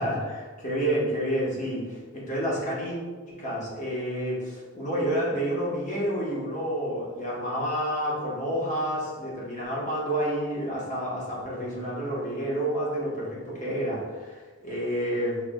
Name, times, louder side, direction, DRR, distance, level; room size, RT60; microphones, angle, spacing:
voice 1, 0.0-3.0 3.3-15.4, equal, 35° left, -5 dB, 1.0 m, -29 dB
4.6 x 3.6 x 2.2 m, 1.4 s
head